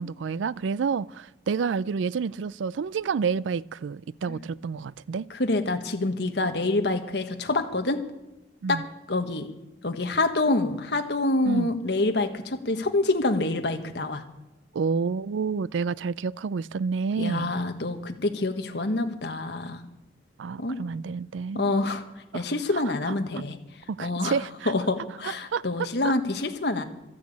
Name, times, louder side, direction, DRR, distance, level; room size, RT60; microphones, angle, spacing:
voice 1, 0.0-5.3 8.6-8.8 11.4-11.7 14.7-17.5 20.4-21.6 22.3-22.4 23.9-24.7 25.5-25.6, right 5 dB, 85° right, 0.4 m, -29 dB
voice 2, 5.3-8.0 8.7-8.8 9.1-9.5 9.8-14.2 17.2-19.8 20.6-20.8 21.5-22.0 22.3-23.6 24.0-24.3 24.6-26.8, left 2 dB, 65° left, 1.4 m, -26 dB
13.0 x 9.5 x 8.5 m
head